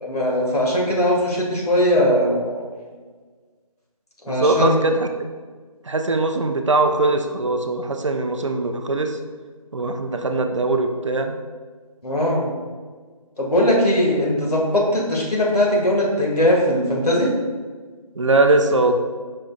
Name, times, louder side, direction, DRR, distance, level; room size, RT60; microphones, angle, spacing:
voice 1, 0.0-2.7 4.2-4.8 12.0-12.5 13.4-17.3, left 1 dB, 90° left, -3 dB, 1.4 m, -20 dB
voice 2, 4.3-5.1 5.8-9.2 9.7-11.4 18.2-18.9, right 2 dB, 55° right, 5 dB, 0.4 m, -21 dB
5.1 x 2.2 x 3.7 m, 1.5 s
figure-of-eight pair, 175°, 19 cm